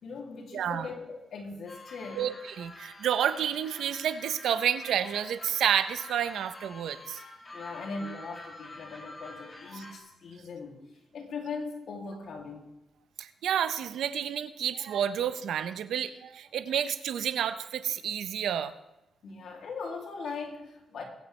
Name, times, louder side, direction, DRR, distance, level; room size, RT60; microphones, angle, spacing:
voice 1, 0.0-2.3 7.5-10.9 11.1-12.7 19.2-21.0, left 4 dB, 75° left, 0 dB, 2.7 m, -40 dB
voice 2, 0.5-0.9 2.1-7.2 13.2-18.7, right 9 dB, 90° right, 12 dB, 0.7 m, -30 dB
sound 1, 1.7-10.0, left 2 dB, 30° left, 2.6 m, -47 dB
21.5 x 9.0 x 3.3 m, 0.93 s
cardioid pair, 95°, 0 cm